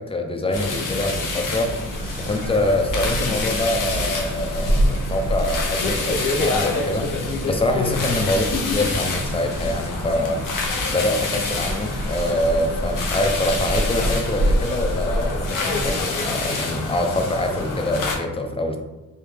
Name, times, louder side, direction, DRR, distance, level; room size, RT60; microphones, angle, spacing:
voice 1, 0.0-1.8 2.2-7.2 7.5-10.4 10.9-18.8, left 1 dB, 20° left, 4 dB, 0.4 m, -25 dB
sound 1, 0.5-18.1, left 3 dB, 90° left, 0.6 m, -27 dB
sound 2, 1.9-15.9, right 1 dB, 60° right, 0.7 m, -28 dB
3.3 x 2.2 x 3.2 m, 1.1 s
cardioid pair, 90°, 31 cm